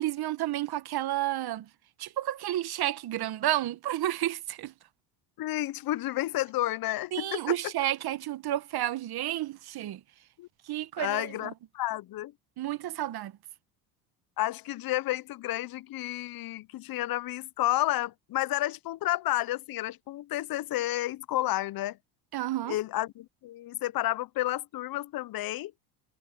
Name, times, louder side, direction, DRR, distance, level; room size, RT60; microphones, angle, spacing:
voice 1, 0.0-1.7 2.0-4.7 7.1-10.0 10.7-11.5 12.6-13.3 22.3-22.8, right 13 dB, 50° right, 1.6 m, -31 dB
voice 2, 5.4-7.6 10.4-10.5 11.0-12.3 14.4-22.0 22.7-25.7, left 15 dB, 45° left, 0.9 m, -31 dB
hypercardioid pair, 75°, 49 cm